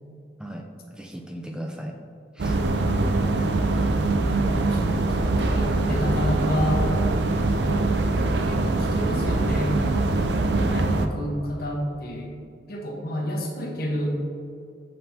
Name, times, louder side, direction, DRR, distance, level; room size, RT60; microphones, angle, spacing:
voice 1, 0.9-2.0 2.3-2.9, equal, 5° right, 2 dB, 0.4 m, -38 dB
sound 1, 2.4-11.1, right 2 dB, 70° right, 0.5 m, -23 dB
voice 2, 4.7-6.9 7.3-7.8 8.4-9.8 10.7-12.3 12.7-14.2, equal, 60° left, 0 dB, 1.1 m, -30 dB
7.6 x 5.4 x 2.8 m, 2.5 s
head